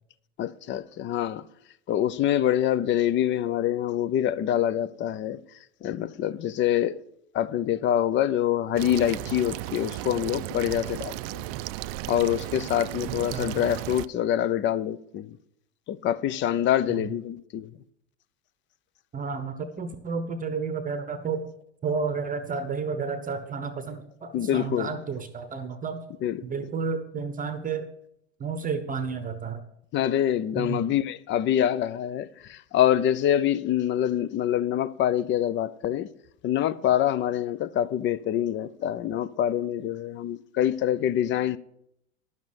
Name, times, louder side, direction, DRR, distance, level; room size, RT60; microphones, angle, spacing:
voice 1, 0.4-1.4 1.9-5.4 5.8-7.0 7.3-11.2 12.1-15.4 15.9-17.7 24.3-24.9 26.2-26.4 29.9-36.1 36.4-41.6, left 11 dB, 35° left, 0.5 m, -25 dB
sound 1, 8.8-14.1, right 16 dB, 50° right, 0.5 m, -35 dB
voice 2, 13.1-13.6 17.0-17.1 19.1-21.5 21.8-26.0 26.4-27.9 28.4-29.6 30.6-30.9, right 5 dB, 25° right, 0.9 m, -31 dB
11.0 x 7.3 x 6.4 m
hypercardioid pair, 90°, 36 cm